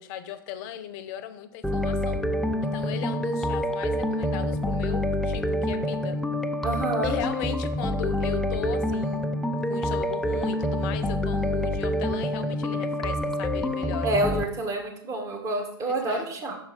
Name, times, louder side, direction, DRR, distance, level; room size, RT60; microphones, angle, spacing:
voice 1, 0.0-2.2 2.6-6.2 7.0-9.3 9.7-14.1 15.8-16.3, left 10 dB, 45° left, 11 dB, 0.8 m, -37 dB
sound 1, 1.6-14.4, left 1 dB, ahead, 0.4 m, -27 dB
voice 2, 6.6-7.2 14.0-16.6, right 1 dB, 25° right, 2 dB, 1.7 m, -28 dB
6.2 x 4.5 x 6.0 m, 0.71 s
hypercardioid pair, 115°, 13 cm